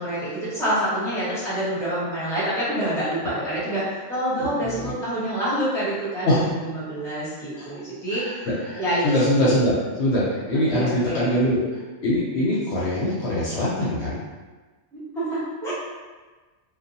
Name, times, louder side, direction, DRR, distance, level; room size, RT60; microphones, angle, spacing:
voice 1, 0.0-8.5 8.8-9.6 10.7-11.3 14.9-15.7, right 1 dB, ahead, -10 dB, 0.9 m, -27 dB
voice 2, 4.4-4.9 6.3-6.4 7.6-7.7 8.1-9.7 10.0-11.6 12.0-14.2, left 1 dB, 65° left, -7 dB, 0.8 m, -23 dB
2.6 x 2.3 x 2.6 m, 1.3 s
omnidirectional pair, 1.3 m